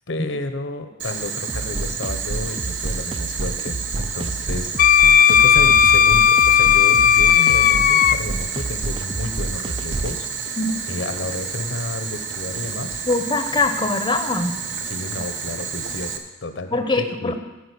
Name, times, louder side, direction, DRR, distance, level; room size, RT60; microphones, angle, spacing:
voice 1, 0.1-10.6 10.9-13.0 14.8-17.4, left 2 dB, 90° left, 8 dB, 1.0 m, -31 dB
Boiling, 1.0-16.2, right 6 dB, 70° right, 1.0 m, -30 dB
sound 1, 1.5-10.2, right 2 dB, 30° right, 0.3 m, -29 dB
Wind instrument woodwind instrument, 4.8-8.2, left 8 dB, 50° left, 0.3 m, -14 dB
voice 2, 13.1-14.6 16.7-17.4, left 2 dB, 25° left, 7 dB, 0.7 m, -22 dB
13.0 x 4.9 x 8.3 m, 1.1 s
head